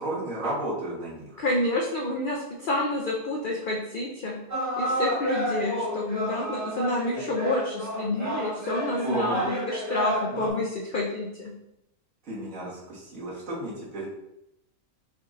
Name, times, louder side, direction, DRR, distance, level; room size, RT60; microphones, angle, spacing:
voice 1, 0.0-1.4 7.1-7.2 9.0-9.6 10.4-10.5 12.2-14.1, right 1 dB, 65° right, -6 dB, 1.8 m, -32 dB
voice 2, 1.4-4.4 4.8-11.5, left 2 dB, 75° left, -1 dB, 0.4 m, -29 dB
sound 1, 4.5-10.5, right 1 dB, 15° right, 0.8 m, -31 dB
5.1 x 2.5 x 3.1 m, 0.86 s
omnidirectional pair, 1.6 m